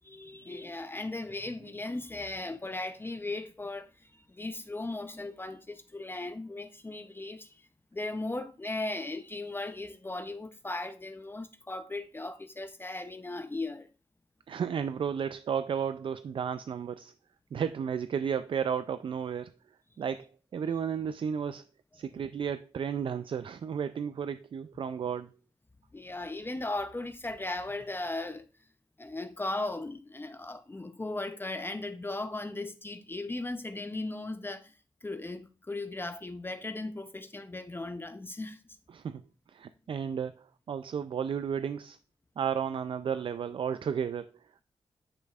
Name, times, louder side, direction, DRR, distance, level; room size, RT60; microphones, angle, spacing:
voice 1, 0.0-13.9 25.9-28.5 29.0-38.6, left 2 dB, 20° left, 0.6 m, -37 dB
voice 2, 14.5-17.1 17.5-19.5 20.0-21.6 21.9-25.3 38.9-39.2 39.5-42.0 42.4-44.6, right 7 dB, 60° right, 0.3 m, -33 dB
9.7 x 5.3 x 2.4 m
cardioid pair, 70°, 10 cm